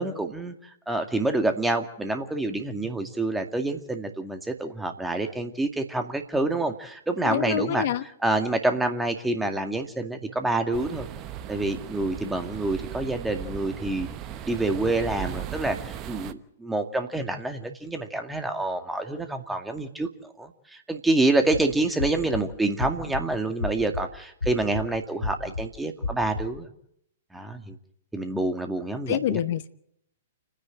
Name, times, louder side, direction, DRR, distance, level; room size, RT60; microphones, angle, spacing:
voice 1, 0.0-7.8 8.2-11.1 11.5-14.1 14.5-26.7 27.3-27.8 28.1-29.4, right 2 dB, 5° right, 5 dB, 2.1 m, -27 dB
voice 2, 7.3-8.0 29.1-29.7, left 11 dB, 50° left, 13 dB, 0.9 m, -26 dB
sound 1, 10.7-16.3, right 10 dB, 30° right, 1.1 m, -37 dB
sound 2, 21.4-21.6 22.0-22.4 22.8-23.2 23.6-24.0 24.4-24.8 25.2-25.6 26.0-26.4, left 3 dB, 85° left, 3.4 m, -31 dB
29.5 x 10.0 x 9.1 m, 0.74 s
figure-of-eight pair, 110°, 0 cm